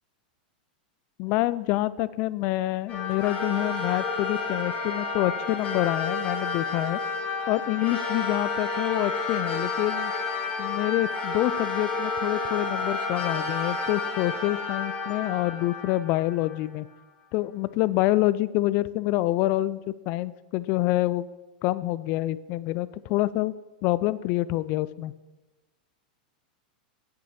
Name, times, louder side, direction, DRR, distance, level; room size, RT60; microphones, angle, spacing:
voice 1, 1.2-7.0 7.5-10.1 10.6-16.9 17.3-21.3 21.6-23.5 23.8-25.1, left 17 dB, 45° left, 17 dB, 0.3 m, -27 dB
sound 1, 2.9-16.7, left 4 dB, 25° left, 1.9 m, -30 dB
8.4 x 6.2 x 5.7 m, 1.2 s
supercardioid pair, 135°, 5 cm